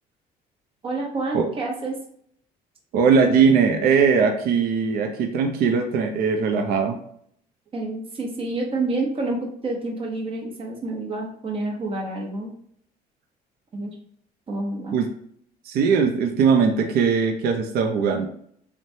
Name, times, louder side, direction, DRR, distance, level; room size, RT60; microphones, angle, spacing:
voice 1, 0.8-2.0 7.7-12.5 13.7-13.9 14.5-15.0, right 2 dB, 35° right, 0 dB, 0.8 m, -28 dB
voice 2, 2.9-7.0 14.9-15.1 15.7-18.3, right 5 dB, 65° right, 4 dB, 0.4 m, -20 dB
3.0 x 2.1 x 2.7 m, 0.66 s
cardioid pair, 110°, 17 cm